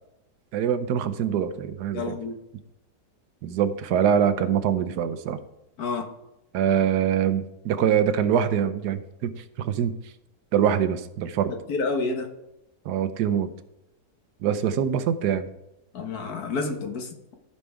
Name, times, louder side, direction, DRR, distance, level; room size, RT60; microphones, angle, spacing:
voice 1, 0.5-2.2 3.4-5.4 6.5-10.0 10.5-11.5 12.8-13.5 14.4-15.5, right 8 dB, 85° right, 11 dB, 1.3 m, -24 dB
voice 2, 1.9-2.4 5.8-6.1 11.5-12.3 15.9-17.3, left 3 dB, 70° left, 5 dB, 1.7 m, -29 dB
14.5 x 5.5 x 3.5 m, 0.91 s
omnidirectional pair, 1.7 m